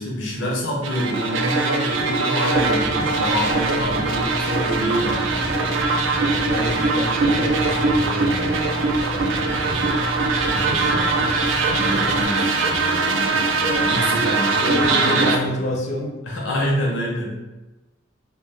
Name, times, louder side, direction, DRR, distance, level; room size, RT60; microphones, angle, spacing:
voice 1, 0.0-5.8 11.7-15.6 16.2-17.3, equal, 80° left, -2 dB, 0.7 m, -27 dB
sound 1, 0.8-15.4, right 3 dB, 75° right, 0.3 m, -21 dB
sound 2, 2.5-12.2, equal, 20° right, 0.5 m, -32 dB
voice 2, 6.1-10.0 10.5-11.3 14.6-16.1, left 1 dB, 35° left, 0 dB, 0.4 m, -29 dB
2.2 x 2.2 x 3.3 m, 1.1 s
head